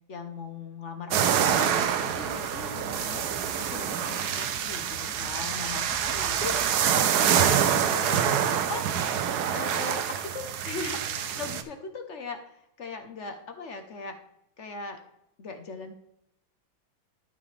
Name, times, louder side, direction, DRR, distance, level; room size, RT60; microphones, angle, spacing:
voice 1, 0.1-1.7 2.0-3.3 3.6-6.6 6.9-9.0 9.5-14.2 14.6-15.0 15.4-15.9, left 4 dB, 50° left, 6 dB, 0.9 m, -39 dB
sound 1, 1.1-11.6, right 8 dB, 65° right, 1.1 m, -26 dB
sound 2, 1.4-11.2, equal, ahead, 1.0 m, -47 dB
12.5 x 6.2 x 3.3 m, 0.79 s
omnidirectional pair, 2.1 m